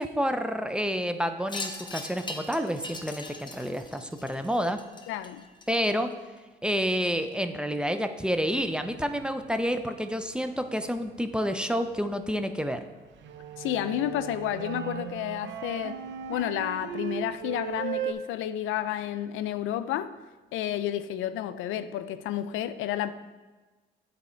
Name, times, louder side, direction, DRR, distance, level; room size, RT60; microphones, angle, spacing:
voice 1, 0.0-4.8 5.7-6.1 6.6-12.8, equal, 5° right, 8 dB, 0.5 m, -29 dB
Wind chime, 1.5-6.1, left 2 dB, 20° left, 0.9 m, -40 dB
voice 2, 5.1-5.5 13.6-16.0 16.3-20.1 20.5-23.1, left 11 dB, 85° left, 12 dB, 0.4 m, -31 dB
sound 1, 8.3-18.1, right 9 dB, 70° right, 0.6 m, -38 dB
9.6 x 4.1 x 4.4 m, 1.2 s
cardioid pair, 90°, 20 cm